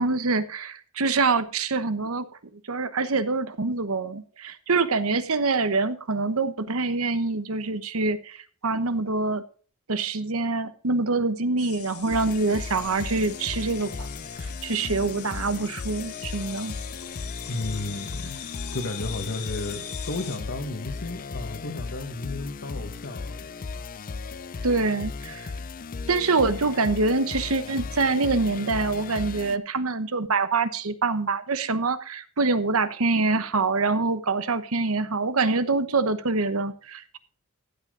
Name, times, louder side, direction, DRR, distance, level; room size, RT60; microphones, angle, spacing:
voice 1, 0.0-2.2 2.7-9.4 9.9-14.1 14.4-16.7 24.6-25.5 26.1-37.2, right 3 dB, 70° right, 13 dB, 1.1 m, -25 dB
sound 1, 11.6-20.4, left 10 dB, 85° left, 1.6 m, -41 dB
sound 2, 12.1-29.6, left 4 dB, 40° left, 0.5 m, -36 dB
voice 2, 17.4-18.4 18.7-23.4, left 2 dB, 60° left, 3 dB, 1.5 m, -33 dB
15.0 x 8.5 x 3.8 m, 0.40 s
head